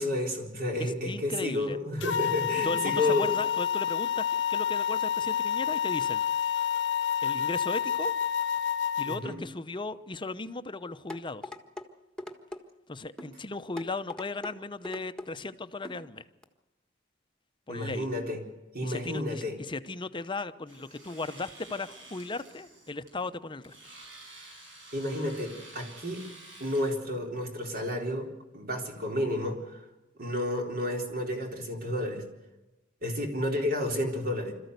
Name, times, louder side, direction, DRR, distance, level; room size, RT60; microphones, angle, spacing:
voice 1, 0.0-3.3 9.1-9.4 17.7-18.4 18.7-19.6 24.9-26.2 26.6-29.8 30.2-32.3 33.0-34.5, left 1 dB, 50° right, 2 dB, 4.1 m, -31 dB
voice 2, 0.8-1.8 2.6-6.2 7.2-8.1 9.0-11.5 12.9-16.2 17.7-18.1 18.8-23.8, left 3 dB, 25° left, 11 dB, 0.8 m, -36 dB
sound 1, 2.0-9.2, left 8 dB, 70° left, 1.0 m, -29 dB
sound 2, 11.1-11.9 12.2-12.6 13.2-13.3 13.8-14.5 14.8-15.3 15.8-16.0 16.4-16.5, left 2 dB, 5° left, 1.5 m, -40 dB
Domestic sounds home sounds, 20.7-27.0, right 2 dB, 80° right, 6.7 m, -50 dB
26.5 x 14.0 x 8.2 m, 1.1 s
head